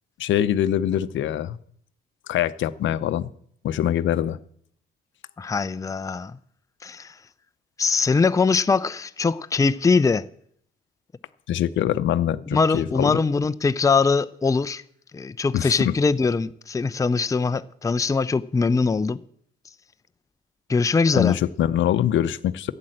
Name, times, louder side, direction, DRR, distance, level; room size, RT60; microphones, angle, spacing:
voice 1, 0.2-1.6 2.3-3.3 3.6-4.4 11.5-13.2 15.5-15.9 21.1-22.7, left 11 dB, 70° left, 0.7 m, -23 dB
voice 2, 5.4-6.4 6.8-7.1 7.8-10.2 12.5-14.8 15.1-19.2 20.7-21.4, left 4 dB, 15° left, 0.5 m, -22 dB
12.0 x 8.6 x 7.8 m
cardioid pair, 90°, 20 cm